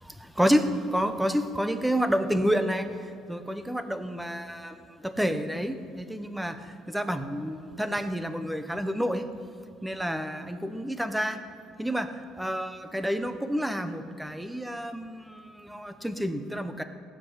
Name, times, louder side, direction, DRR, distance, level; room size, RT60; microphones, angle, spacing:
voice 1, 0.0-2.9 3.3-9.3 9.8-11.4 11.8-12.1 12.4-16.8, equal, ahead, 9 dB, 0.5 m, -29 dB
18.5 x 7.4 x 5.6 m, 2.3 s
cardioid pair, 175°, 0 cm